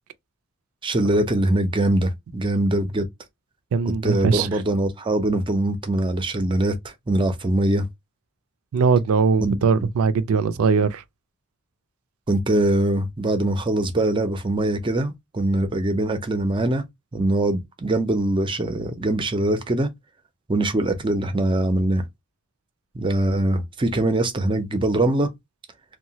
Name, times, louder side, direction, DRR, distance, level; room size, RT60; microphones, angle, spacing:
voice 1, 0.8-3.1 3.9-7.9 9.4-9.9 12.3-16.8 17.1-19.9 20.5-22.0 22.9-25.3, right 1 dB, 25° right, 0.5 m, -22 dB
voice 2, 3.7-4.5 8.7-11.0, right 5 dB, 80° right, 0.4 m, -20 dB
2.8 x 2.2 x 2.7 m
head